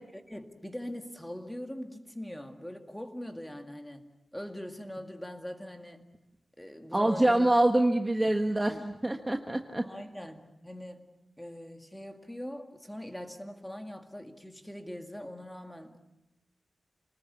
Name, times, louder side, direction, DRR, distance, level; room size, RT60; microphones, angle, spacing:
voice 1, 0.3-6.1 6.6-7.5 9.8-11.1 11.4-16.0, left 1 dB, 5° left, 5 dB, 2.1 m, -42 dB
voice 2, 6.9-9.8, right 1 dB, 15° right, 4 dB, 1.3 m, -25 dB
28.5 x 20.0 x 8.4 m, 0.99 s
wide cardioid pair, 155°, 0 cm